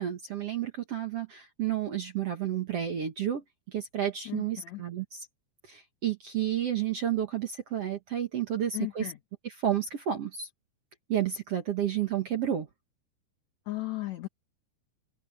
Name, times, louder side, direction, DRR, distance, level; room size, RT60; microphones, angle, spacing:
voice 1, 0.0-5.2 5.7-9.1 9.4-10.5 11.1-12.7, right 10 dB, 60° right, 1.6 m, -31 dB
voice 2, 4.2-4.8 8.7-9.2 13.7-14.3, left 18 dB, 90° left, 1.5 m, -35 dB
open air
omnidirectional pair, 4.7 m